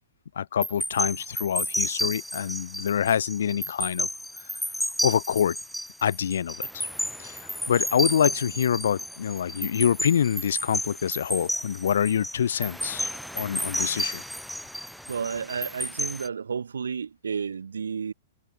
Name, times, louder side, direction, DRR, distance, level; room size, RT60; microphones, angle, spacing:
voice 1, 0.4-4.1 5.0-5.6 6.0-6.9 7.2-7.4 7.7-14.2, left 8 dB, 75° left, 2.2 m, -26 dB
sound 1, 0.6-16.3, equal, ahead, 1.6 m, -32 dB
voice 2, 15.1-18.1, right 6 dB, 85° right, 1.3 m, -32 dB
hypercardioid pair, 120°, 0 cm